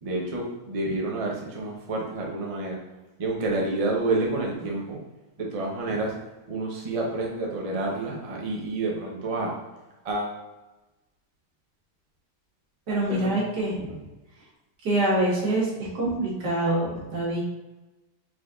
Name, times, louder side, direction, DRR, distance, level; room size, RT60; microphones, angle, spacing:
voice 1, 0.0-2.8 3.2-5.0 5.4-6.1 6.5-9.5 10.0-10.4 13.1-13.3, right 2 dB, 40° right, -1 dB, 0.5 m, -29 dB
voice 2, 12.9-14.0 14.8-17.4, right 1 dB, 75° right, -5 dB, 2.0 m, -25 dB
4.5 x 4.3 x 2.4 m, 1.1 s
omnidirectional pair, 1.8 m